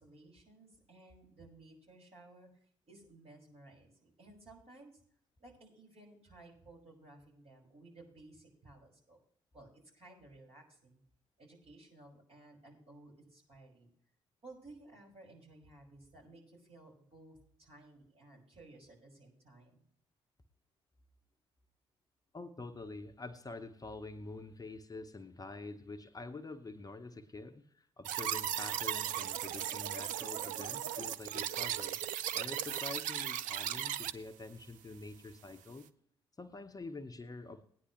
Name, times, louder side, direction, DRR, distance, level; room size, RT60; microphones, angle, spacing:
voice 1, 0.0-2.5 2.8-5.0 5.4-9.2 9.5-9.7 9.9-11.0 11.4-13.9 14.4-19.8, right 2 dB, 45° right, -3 dB, 5.9 m, -57 dB
voice 2, 22.3-32.0 32.3-35.9 36.4-37.6, left 3 dB, 25° left, 7 dB, 1.0 m, -46 dB
sound 1, 28.1-34.1, right 11 dB, 60° right, 0.5 m, -37 dB
17.0 x 9.9 x 3.1 m, 0.63 s
figure-of-eight pair, 40°, 15 cm